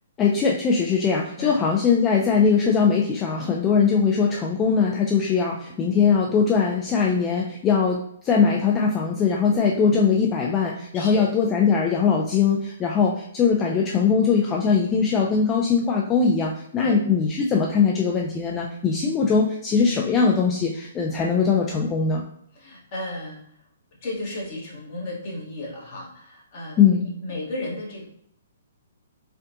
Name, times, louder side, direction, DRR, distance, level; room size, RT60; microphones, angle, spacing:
voice 1, 0.2-22.2 26.8-27.1, left 5 dB, 20° left, -1 dB, 0.4 m, -21 dB
voice 2, 10.9-11.3 16.8-17.0 22.5-23.4 24.0-26.8 27.2-28.1, left 1 dB, 45° left, -3 dB, 1.4 m, -34 dB
4.3 x 2.4 x 2.7 m, 0.69 s
figure-of-eight pair, 125°, 0 cm